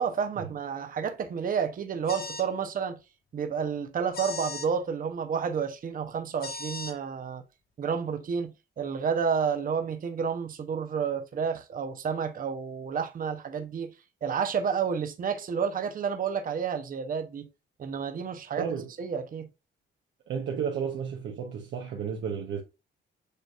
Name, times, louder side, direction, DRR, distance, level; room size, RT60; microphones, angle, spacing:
voice 1, 0.0-3.0 3.3-7.4 7.8-8.5 8.8-13.9 14.2-17.5 17.8-18.7 19.0-19.5, right 6 dB, 45° right, 0.8 m, -30 dB
sound 1, 2.1-2.5 4.1-4.7 6.4-6.9, left 3 dB, 50° left, 1.3 m, -37 dB
voice 2, 18.6-18.9 20.3-22.6, right 7 dB, 70° right, 0.9 m, -32 dB
6.6 x 3.3 x 2.4 m
cardioid pair, 90°, 20 cm